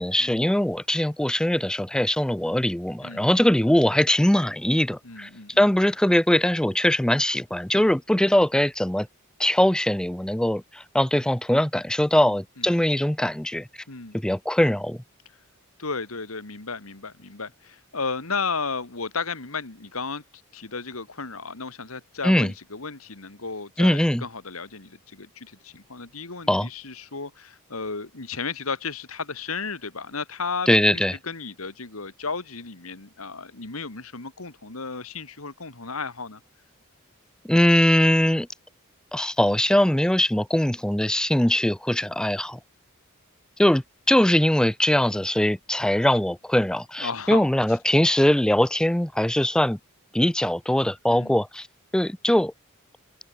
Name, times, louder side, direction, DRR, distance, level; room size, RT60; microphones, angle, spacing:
voice 1, 0.0-5.3 5.6-9.1 9.4-13.7 14.2-15.0 22.2-22.5 23.8-24.2 26.5-26.7 30.7-31.1 37.4-38.5 39.1-42.6 43.6-49.8 50.1-51.7 51.9-52.5, left 1 dB, 5° left, 0.4 m, -21 dB
voice 2, 5.0-5.6 7.7-7.9 12.2-12.7 13.9-14.2 15.8-20.2 20.5-36.4 47.0-47.5 51.1-51.3, left 4 dB, 80° left, 2.3 m, -34 dB
head